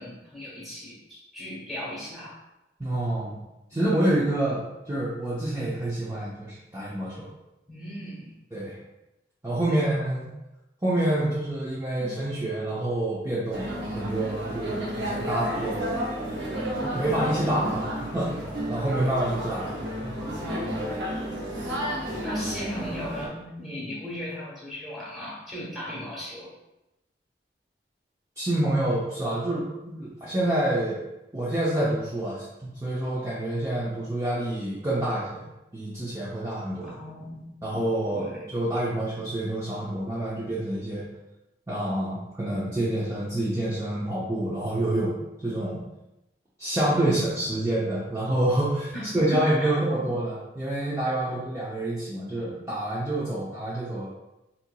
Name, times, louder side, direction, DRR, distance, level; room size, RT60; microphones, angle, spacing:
voice 1, 0.0-2.4 3.7-3.8 7.7-8.4 9.7-9.8 12.0-12.1 20.2-20.7 21.6-26.5 36.8-37.5 38.1-38.4 46.9-47.4 48.9-49.7 50.0-50.1 51.2-51.3, equal, ahead, -8 dB, 1.3 m, -37 dB
voice 2, 2.8-3.4 3.7-7.3 8.5-8.8 9.4-10.3 10.8-16.0 16.8-18.3 18.7-20.2 28.4-31.0 31.3-36.9 37.6-41.0 41.7-45.8 46.6-54.1, right 1 dB, 15° right, -9 dB, 0.5 m, -27 dB
sound 1, 13.5-23.3, equal, 85° right, 0.8 m, -32 dB
4.2 x 2.8 x 2.2 m, 0.95 s
head